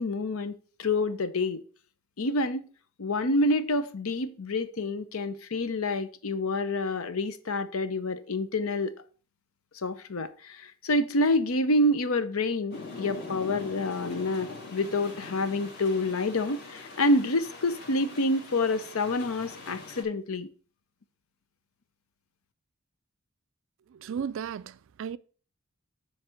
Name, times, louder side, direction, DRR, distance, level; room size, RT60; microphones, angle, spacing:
voice 1, 0.0-1.6 2.2-2.6 3.0-8.9 9.8-20.5, left 2 dB, 75° left, 0.7 m, -28 dB
sound 1, 12.7-20.0, left 3 dB, 50° left, 1.8 m, -43 dB
voice 2, 23.9-25.2, right 7 dB, 60° right, 0.3 m, -35 dB
7.1 x 3.4 x 6.2 m
head